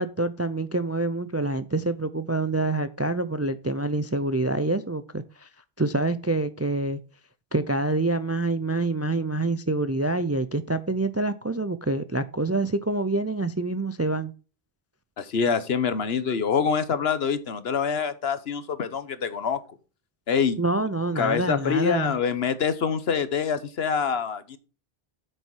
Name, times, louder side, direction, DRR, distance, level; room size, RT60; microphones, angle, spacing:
voice 1, 0.0-5.5 5.8-7.0 7.5-14.3 20.6-22.1, right 2 dB, 25° right, 0.3 m, -26 dB
voice 2, 15.2-19.6 20.3-20.6 21.2-24.6, left 6 dB, 75° left, 1.2 m, -25 dB
8.6 x 6.7 x 4.6 m
omnidirectional pair, 1.1 m